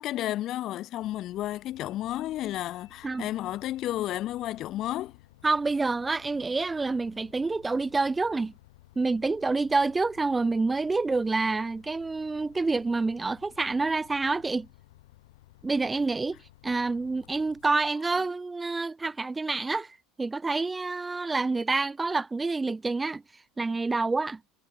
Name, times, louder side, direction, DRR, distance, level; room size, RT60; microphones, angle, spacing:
voice 1, 0.0-5.2, left 14 dB, 50° left, 1.3 m, -32 dB
Bus, 1.0-17.9, left 17 dB, 85° left, 6.8 m, -56 dB
voice 2, 5.4-8.5 9.0-14.7 15.6-16.4 16.6-23.2 23.6-24.4, right 3 dB, 15° right, 0.7 m, -27 dB
supercardioid pair, 115°, 0 cm